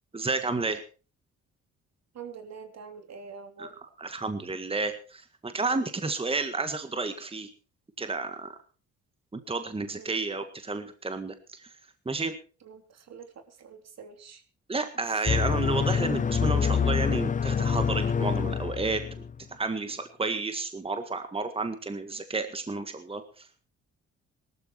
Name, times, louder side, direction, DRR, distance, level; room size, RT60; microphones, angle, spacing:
voice 1, 0.1-0.8 3.6-3.7 4.0-7.5 8.0-8.6 9.3-11.7 12.1-12.3 14.7-19.3 19.6-23.7, right 3 dB, 20° right, 9 dB, 1.8 m, -31 dB
voice 2, 2.1-3.7 10.0-10.2 12.6-14.4 15.1-15.2, right 5 dB, 60° right, 7 dB, 3.3 m, -45 dB
sound 1, 15.3-19.3, left 6 dB, 25° left, 0.6 m, -26 dB
18.5 x 13.0 x 4.5 m, 0.36 s
cardioid pair, 90°, 30 cm